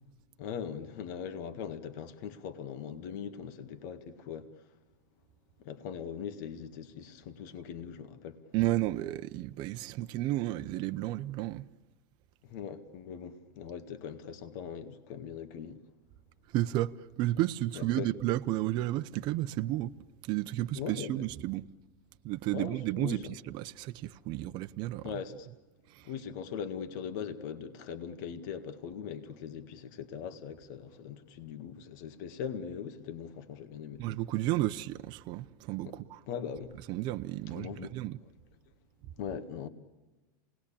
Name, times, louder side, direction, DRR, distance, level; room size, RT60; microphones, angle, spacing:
voice 1, 0.4-4.7 5.6-8.4 12.4-15.8 17.8-18.1 20.7-21.3 22.5-23.4 25.0-25.5 26.0-34.0 35.8-36.0 36.3-36.7 37.5-38.0 39.2-39.7, left 7 dB, 60° left, 1.9 m, -40 dB
voice 2, 8.5-11.7 16.5-20.0 20.2-21.6 22.2-25.1 25.9-26.1 34.0-36.2 36.9-38.2, right 15 dB, 45° right, 0.8 m, -32 dB
28.0 x 19.5 x 8.7 m
supercardioid pair, 130°, 11 cm